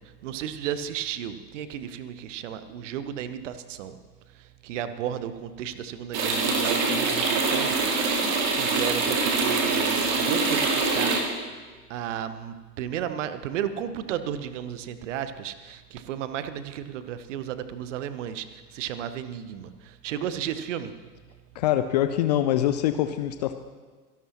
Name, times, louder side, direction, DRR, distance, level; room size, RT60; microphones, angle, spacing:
voice 1, 0.2-4.0 4.6-11.2 11.9-20.9, right 9 dB, 50° right, 12 dB, 1.0 m, -33 dB
sound 1, 6.1-11.2, right 3 dB, 35° right, 2.5 m, -24 dB
voice 2, 21.6-23.5, left 12 dB, 30° left, 10 dB, 0.4 m, -24 dB
24.5 x 12.0 x 3.0 m, 1.4 s
figure-of-eight pair, 85°, 46 cm